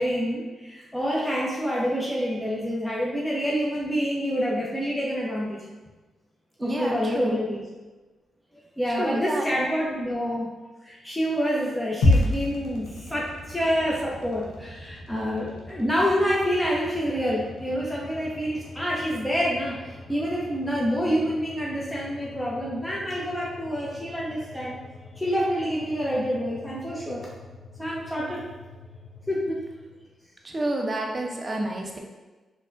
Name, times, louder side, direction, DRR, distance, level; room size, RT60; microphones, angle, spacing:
voice 1, 0.0-5.6 6.6-7.6 8.8-10.5 10.8-19.8 20.1-24.8 25.2-27.3 27.8-28.4 29.3-29.6, equal, 10° left, -5 dB, 0.8 m, -27 dB
voice 2, 6.6-7.4 9.0-9.4 12.5-12.9 30.4-32.0, right 1 dB, 35° right, 1 dB, 0.7 m, -30 dB
sound 1, 12.0-30.2, left 2 dB, 90° left, 0.5 m, -34 dB
4.1 x 2.4 x 2.6 m, 1.2 s
supercardioid pair, 45°, 0 cm